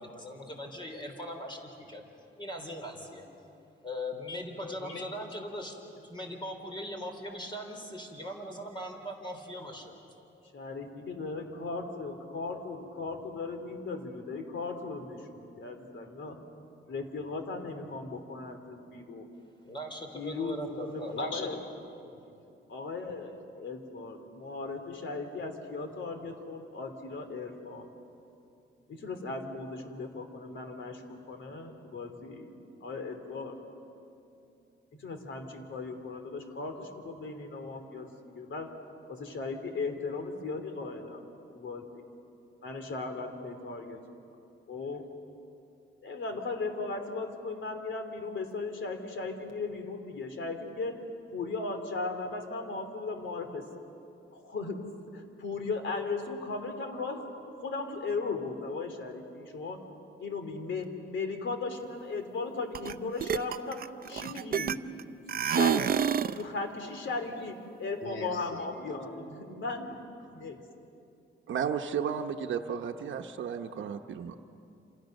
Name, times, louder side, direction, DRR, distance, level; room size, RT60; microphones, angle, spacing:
voice 1, 0.0-2.0 2.4-3.2 3.8-10.0 19.6-21.2, equal, 25° left, 4 dB, 4.0 m, -40 dB
voice 2, 4.6-5.1 10.5-16.4 16.9-19.3 20.1-22.4 22.7-27.9 28.8-32.5 32.8-33.7 34.3-34.4 34.9-38.8 39.1-41.2 41.5-42.0 42.6-44.0 44.7-45.0 46.0-51.0 51.3-53.7 54.3-59.8 60.2-64.8 65.4-70.0 70.3-70.6, left 3 dB, 65° left, 6 dB, 3.0 m, -37 dB
sound 1, 62.7-62.9 63.2-65.0 65.3-66.4, right 8 dB, 45° right, 0.6 m, -28 dB
voice 3, 71.5-74.4, right 7 dB, 70° right, 5 dB, 1.0 m, -33 dB
28.0 x 28.0 x 6.6 m, 2.7 s
wide cardioid pair, 135°, 21 cm